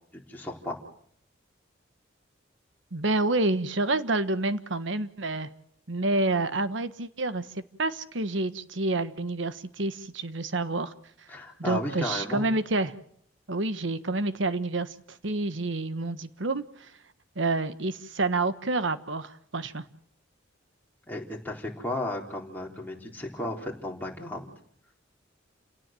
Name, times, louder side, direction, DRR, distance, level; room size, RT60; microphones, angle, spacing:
voice 1, 0.1-0.8 11.3-12.5 21.1-24.5, left 1 dB, 10° left, -1 dB, 4.1 m, -34 dB
voice 2, 2.9-5.5 5.9-7.5 7.8-10.9 11.6-12.9 13.5-16.9 17.3-19.8, right 2 dB, 65° right, 12 dB, 1.3 m, -28 dB
29.5 x 18.0 x 7.8 m, 0.66 s
head